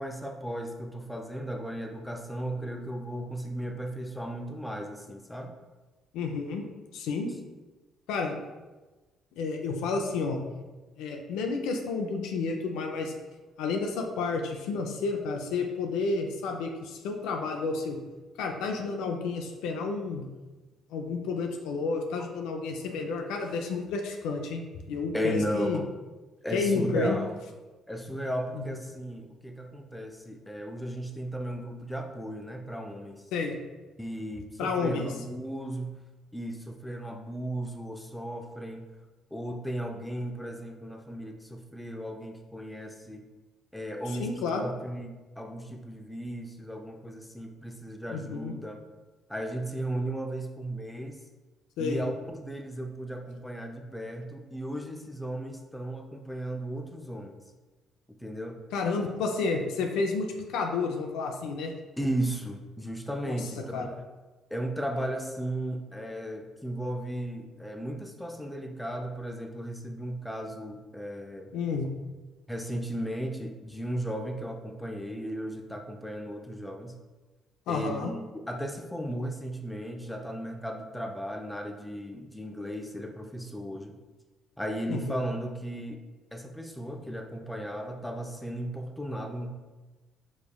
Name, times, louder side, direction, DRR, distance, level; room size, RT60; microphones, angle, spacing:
voice 1, 0.0-5.5 25.1-25.8 26.4-27.4 27.9-33.3 34.0-36.0 36.3-38.9 39.3-43.3 43.7-48.8 49.3-51.2 51.8-57.4 58.2-58.6 62.0-63.9 64.5-71.5 72.5-77.0 77.7-84.0 84.6-86.0 86.3-89.5, right 1 dB, 5° left, 3 dB, 0.6 m, -35 dB
voice 2, 6.1-6.7 6.9-7.3 8.1-8.4 9.4-10.4 11.0-13.1 13.6-18.0 18.4-20.2 20.9-24.6 24.9-25.8 26.5-27.2 28.5-28.6 33.3-33.6 34.6-35.1 44.2-44.7 48.1-48.5 51.8-52.0 58.7-61.7 63.2-63.4 63.7-63.9 71.5-71.9 77.7-78.2 84.9-85.2, left 4 dB, 75° left, 3 dB, 0.4 m, -30 dB
5.1 x 3.4 x 2.3 m, 1.2 s
hypercardioid pair, 55°, 0 cm